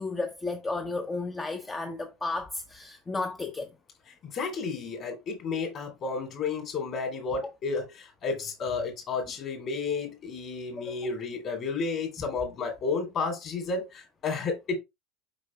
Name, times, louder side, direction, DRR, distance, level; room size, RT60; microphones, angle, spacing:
voice 1, 0.0-3.7, left 3 dB, 20° left, 0.8 m, -33 dB
voice 2, 4.2-14.8, left 4 dB, 40° left, 3.2 m, -32 dB
7.4 x 5.5 x 2.3 m
figure-of-eight pair, 70°, 0 cm